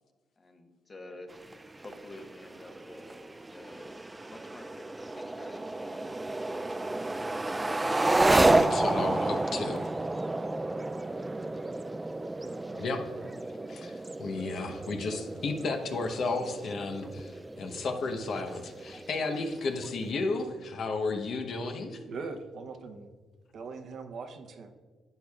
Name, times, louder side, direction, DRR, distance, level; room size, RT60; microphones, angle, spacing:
voice 1, 0.4-1.5 1.8-3.9 4.3-4.8 5.1-6.9 8.0-8.3 9.1-10.6, left 2 dB, 30° left, 5 dB, 1.1 m, -48 dB
sound 1, 1.3-20.1, right 2 dB, 15° right, 0.3 m, -31 dB
voice 2, 8.4-9.9 12.7-13.0 13.7-22.0, left 3 dB, 60° left, 5 dB, 0.9 m, -33 dB
voice 3, 22.1-23.1 23.5-24.7, right 4 dB, 60° right, 7 dB, 0.8 m, -40 dB
11.0 x 8.5 x 2.4 m, 1.5 s
cardioid pair, 90°, 0 cm